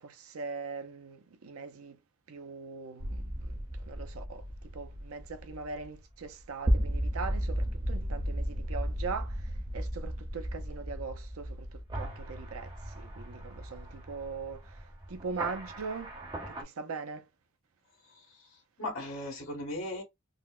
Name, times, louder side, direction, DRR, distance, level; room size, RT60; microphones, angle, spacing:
voice 1, 0.0-2.0 2.3-16.2 16.5-17.3, right 4 dB, 80° right, 0.5 m, -41 dB
sound 1, 3.0-16.6, equal, 20° right, 0.5 m, -35 dB
voice 2, 18.1-18.5 18.8-20.0, left 1 dB, 70° left, 1.5 m, -38 dB
3.8 x 2.1 x 2.3 m
head